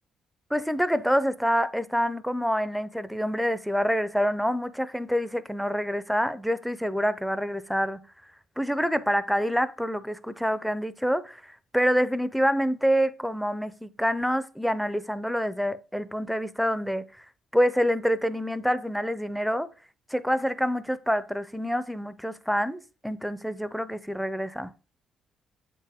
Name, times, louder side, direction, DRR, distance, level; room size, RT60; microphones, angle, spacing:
voice 1, 0.5-8.0 8.6-17.0 17.5-19.7 20.1-24.7, equal, ahead, 0.5 m, -27 dB
7.9 x 4.5 x 3.5 m
cardioid pair, 90°, 0 cm